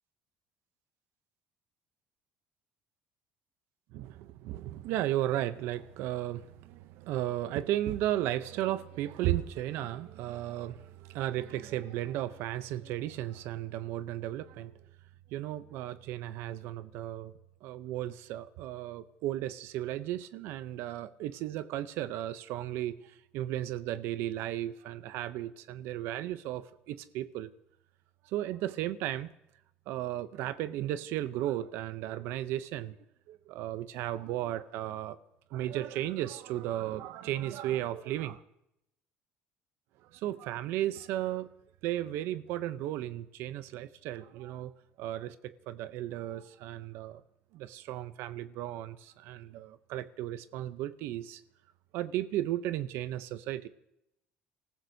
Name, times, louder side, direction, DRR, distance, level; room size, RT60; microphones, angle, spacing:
voice 1, 3.9-14.7 15.3-17.3 17.6-27.5 28.2-29.3 29.9-33.0 33.3-35.2 35.5-38.4 40.0-41.5 41.8-44.7 45.0-47.2 47.5-51.4 51.9-53.7, right 13 dB, 70° right, 0.6 m, -35 dB
29.5 x 14.5 x 2.7 m
cardioid pair, 140°, 4 cm